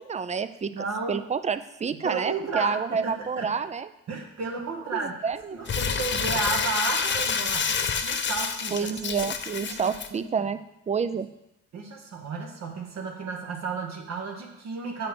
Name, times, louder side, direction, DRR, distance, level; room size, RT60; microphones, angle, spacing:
voice 1, 0.0-3.9 4.9-5.6 8.7-10.6 10.9-11.3, right 6 dB, 25° right, 13 dB, 0.4 m, -29 dB
voice 2, 0.7-1.2 2.0-3.5 4.1-5.2 5.5-7.8 8.0-8.9 9.5-10.3 11.7-15.1, right 4 dB, 60° right, 1 dB, 1.4 m, -33 dB
Crumpling crinkling, 5.7-10.1, left 6 dB, 40° left, 0.7 m, -28 dB
7.7 x 5.2 x 6.0 m, 0.87 s
cardioid pair, 90°, 30 cm